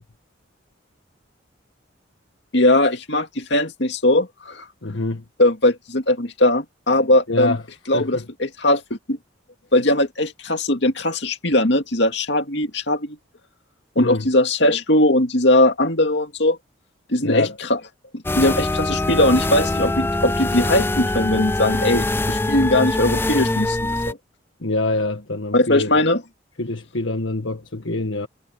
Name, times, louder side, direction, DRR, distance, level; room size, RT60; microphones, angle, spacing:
voice 1, 2.5-4.6 5.4-7.6 7.9-8.8 9.1-9.2 9.7-13.2 14.0-16.6 17.1-17.8 18.4-24.2 25.5-26.2, left 1 dB, 60° left, 2.4 m, -19 dB
voice 2, 4.8-5.2 7.3-7.6 7.9-8.2 14.0-14.3 17.2-17.6 24.6-26.0 26.6-28.3, left 2 dB, 75° left, 1.5 m, -25 dB
sound 1, 18.2-24.1, left 2 dB, 10° left, 0.3 m, -23 dB
head